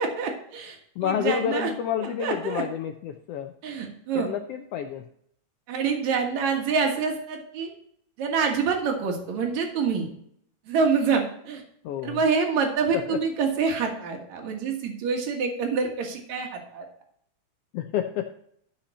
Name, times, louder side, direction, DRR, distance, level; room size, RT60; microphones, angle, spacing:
voice 1, 0.0-1.7 2.2-2.6 3.6-4.3 5.7-7.7 8.2-10.1 10.7-11.6 12.0-16.8, right 5 dB, 70° right, 2 dB, 2.8 m, -26 dB
voice 2, 1.0-3.5 4.1-5.1 11.8-12.2 12.9-13.2 17.7-18.3, left 9 dB, 85° left, 7 dB, 1.3 m, -29 dB
13.0 x 5.7 x 4.1 m, 0.68 s
omnidirectional pair, 3.4 m